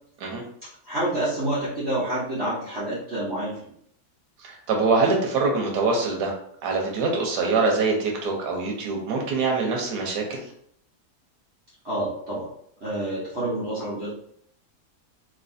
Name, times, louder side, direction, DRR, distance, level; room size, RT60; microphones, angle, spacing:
voice 1, 0.9-3.7 11.8-12.5 12.8-14.1, right 1 dB, 45° right, -10 dB, 1.2 m, -28 dB
voice 2, 4.4-6.3 6.6-10.5, right 3 dB, 85° right, 0 dB, 1.3 m, -24 dB
3.2 x 2.9 x 2.6 m, 0.68 s
omnidirectional pair, 1.7 m